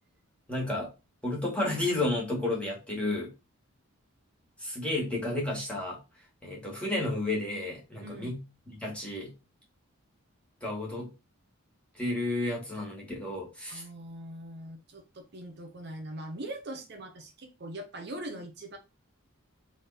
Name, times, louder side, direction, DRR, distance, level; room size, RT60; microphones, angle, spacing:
voice 1, 0.5-0.9 1.2-3.3 4.6-6.0 6.4-9.3 10.6-11.1 12.0-13.8, left 2 dB, 5° left, 1.8 m, -32 dB
voice 2, 8.0-8.4 13.7-18.8, right 1 dB, 50° right, 0.7 m, -41 dB
3.7 x 3.5 x 4.1 m
head